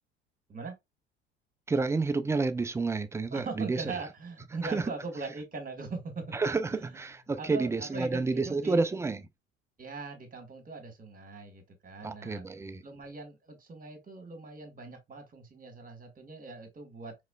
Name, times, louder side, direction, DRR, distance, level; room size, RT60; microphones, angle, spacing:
voice 1, 1.7-3.8 4.6-4.9 6.3-9.2 12.0-12.8, right 3 dB, 10° right, 0.4 m, -30 dB
voice 2, 3.3-6.4 6.7-7.0 7.4-8.9 9.8-17.2, right 3 dB, 25° right, 1.6 m, -41 dB
4.8 x 3.3 x 2.3 m
figure-of-eight pair, 65°, 32 cm